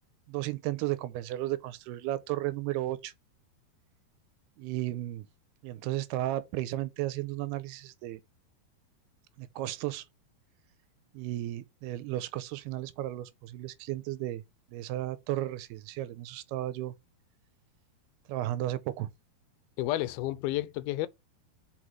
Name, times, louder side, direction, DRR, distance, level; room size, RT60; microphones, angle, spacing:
voice 1, 0.3-3.1 4.6-5.3 5.6-8.2 9.4-10.0 11.1-14.4 14.7-16.9 18.3-19.1, right 15 dB, 90° right, 2.6 m, -34 dB
voice 2, 19.8-21.1, left 16 dB, 80° left, 2.4 m, -31 dB
6.3 x 4.7 x 5.6 m
omnidirectional pair, 4.6 m